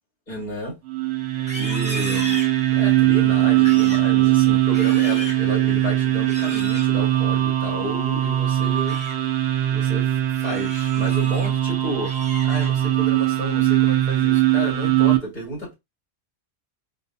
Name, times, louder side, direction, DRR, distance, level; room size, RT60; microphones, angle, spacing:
voice 1, 0.3-0.8 1.5-9.0 9.7-12.1 12.4-15.7, left 1 dB, 45° left, 2.2 m, -32 dB
sound 1, 0.9-15.2, right 14 dB, 75° right, 0.9 m, -20 dB
Livestock farm animals working animals, 1.3-3.0 3.5-4.1 4.5-5.5 6.2-6.9 8.6-9.2 9.6-9.9 10.3-11.5 11.9-12.9 13.3-13.7 14.1-14.5, equal, 5° right, 1.3 m, -37 dB
3.7 x 2.7 x 2.6 m
omnidirectional pair, 1.1 m